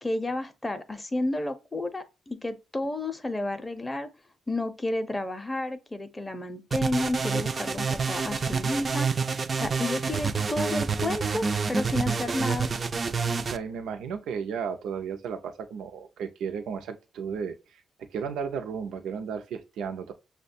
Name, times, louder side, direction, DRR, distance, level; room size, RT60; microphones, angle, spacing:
voice 1, 0.0-4.1 4.5-9.1 9.5-12.7, left 2 dB, 15° left, 0.5 m, -31 dB
sound 1, 6.7-13.6, right 5 dB, 35° right, 0.3 m, -28 dB
voice 2, 13.4-20.1, right 6 dB, 90° right, 0.5 m, -34 dB
6.3 x 2.1 x 2.5 m
cardioid pair, 115°, 0 cm